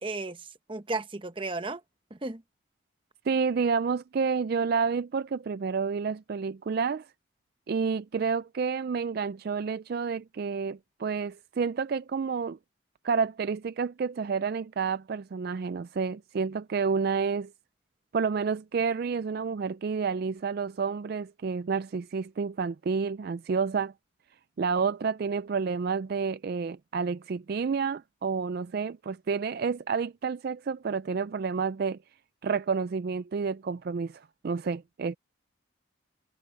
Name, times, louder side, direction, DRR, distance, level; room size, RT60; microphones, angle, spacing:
voice 1, 0.0-1.8 2.1-2.4, right 3 dB, 25° right, 0.8 m, -34 dB
voice 2, 3.3-7.1 7.7-12.6 13.0-17.5 18.1-23.9 24.6-32.0 32.4-35.2, right 5 dB, 50° right, 0.3 m, -29 dB
head